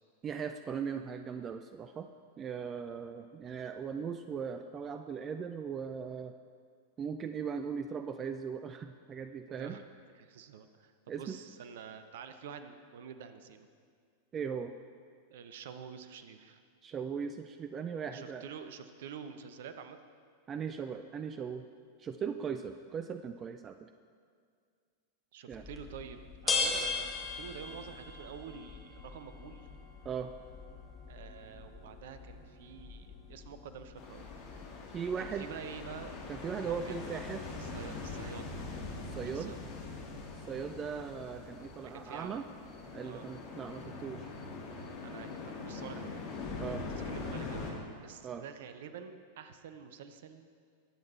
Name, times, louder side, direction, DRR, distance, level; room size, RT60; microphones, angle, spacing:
voice 1, 0.2-2.1 2.4-6.3 7.0-9.8 11.1-11.4 14.3-14.7 16.8-18.5 20.5-21.7 22.0-23.9 25.5-25.7 30.0-30.3 34.9-35.5 36.3-37.4 39.1-39.5 40.5-42.5 42.9-44.3 46.6-46.8 48.2-48.5, right 6 dB, 25° right, 8 dB, 0.5 m, -38 dB
voice 2, 9.5-9.8 10.1-13.7 15.3-16.6 18.1-20.0 25.3-26.2 26.4-29.7 31.1-34.3 35.2-36.2 36.6-37.2 37.6-38.5 39.3-39.6 41.8-42.4 43.0-43.3 45.0-46.2 47.0-50.5, right 7 dB, 55° right, 10 dB, 0.9 m, -48 dB
sound 1, 25.5-37.0, left 4 dB, 15° left, 2.1 m, -40 dB
sound 2, 34.0-47.7, left 3 dB, 45° left, 2.9 m, -43 dB
21.5 x 8.6 x 4.3 m, 2.1 s
figure-of-eight pair, 90°, 0 cm